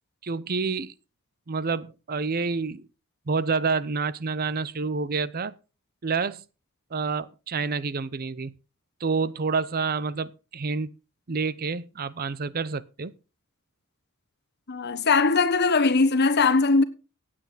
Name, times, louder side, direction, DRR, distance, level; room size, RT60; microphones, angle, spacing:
voice 1, 0.2-0.9 1.5-2.9 3.3-5.5 6.0-6.4 6.9-8.5 9.0-10.9 11.3-13.1, right 4 dB, 45° right, 0.7 m, -28 dB
voice 2, 14.7-16.8, left 4 dB, 55° left, 1.4 m, -20 dB
16.0 x 8.8 x 4.0 m
head